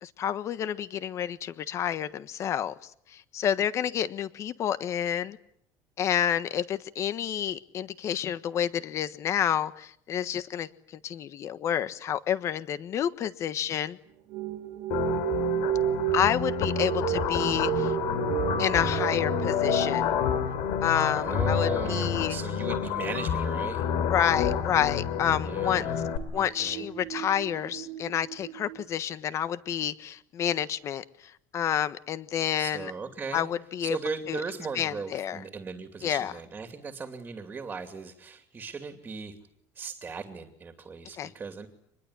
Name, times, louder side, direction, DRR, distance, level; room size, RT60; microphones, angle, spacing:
voice 1, 0.0-2.7 3.1-5.4 6.0-14.0 16.1-17.9 18.6-20.1 20.8-22.4 24.1-25.8 26.3-32.9 33.3-34.0 34.3-34.4 34.7-35.4 36.0-36.3 41.1-41.3, left 9 dB, 40° left, 14 dB, 1.4 m, -29 dB
sound 1, 14.3-28.9, right 13 dB, 75° right, 2.4 m, -34 dB
sound 2, 14.9-26.2, left 8 dB, 70° left, 3.5 m, -29 dB
voice 2, 21.1-23.9 25.4-26.1 26.3-26.9 32.5-33.5 33.8-39.3 39.7-41.7, right 4 dB, 20° right, 6 dB, 2.7 m, -37 dB
26.0 x 21.0 x 9.9 m, 0.69 s
cardioid pair, 150°, 8 cm